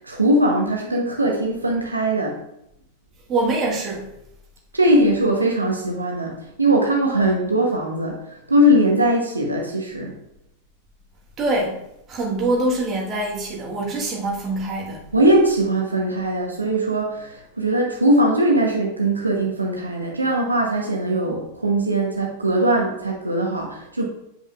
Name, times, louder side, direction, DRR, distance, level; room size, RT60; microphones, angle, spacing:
voice 1, 0.0-2.4 4.7-10.2 15.1-24.0, right 1 dB, 80° right, 0 dB, 0.9 m, -20 dB
voice 2, 3.3-4.1 11.4-11.8 12.1-15.0, right 2 dB, 30° right, -2 dB, 1.5 m, -24 dB
7.9 x 5.2 x 2.5 m, 0.80 s
figure-of-eight pair, 90°, 0 cm